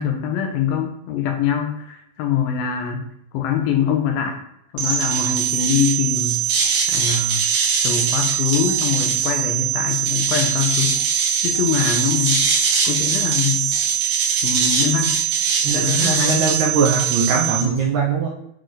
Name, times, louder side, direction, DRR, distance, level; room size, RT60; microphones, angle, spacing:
voice 1, 0.0-3.1 3.3-4.4 4.7-6.4 6.9-7.5 7.8-11.0 11.4-12.4 12.9-13.7 14.4-15.2 15.7-16.4, left 7 dB, 80° left, 3 dB, 2.2 m, -23 dB
sound 1, 4.8-17.6, right 7 dB, 65° right, 2.8 m, -21 dB
voice 2, 15.6-18.3, right 5 dB, 80° right, -2 dB, 1.7 m, -21 dB
7.7 x 4.2 x 3.2 m, 0.76 s
omnidirectional pair, 4.4 m